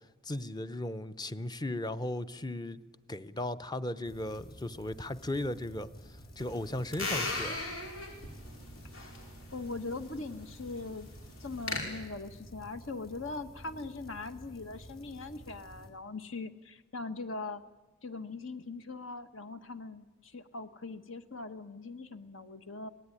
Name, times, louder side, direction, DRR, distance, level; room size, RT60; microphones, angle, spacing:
voice 1, 0.2-2.8 3.1-5.9 6.4-7.6, left 1 dB, 20° left, 0.7 m, -36 dB
sound 1, 4.0-15.9, equal, 45° left, 4.0 m, -52 dB
sound 2, 6.4-11.8, left 3 dB, 90° left, 5.4 m, -39 dB
voice 2, 9.5-11.1 11.4-17.6 18.0-22.9, left 3 dB, 65° left, 1.4 m, -41 dB
25.0 x 19.0 x 9.9 m
head